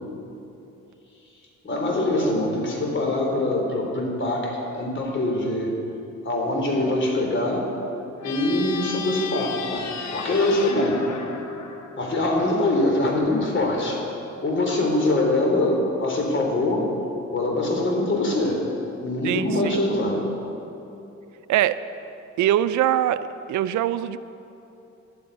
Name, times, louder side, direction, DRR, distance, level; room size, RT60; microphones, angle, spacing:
voice 1, 1.6-5.7 6.2-7.7 8.2-9.8 10.1-11.0 12.0-14.0 14.4-16.9 17.3-18.6 19.0-20.2, left 2 dB, 40° left, 0 dB, 3.5 m, -23 dB
sound 1, 8.2-12.6, left 5 dB, 65° left, 1.5 m, -35 dB
voice 2, 19.2-19.8 21.5-21.8 22.4-23.2 23.5-24.2, right 12 dB, 75° right, 13 dB, 0.5 m, -22 dB
11.5 x 8.6 x 10.0 m, 2.9 s
cardioid pair, 90°, 30 cm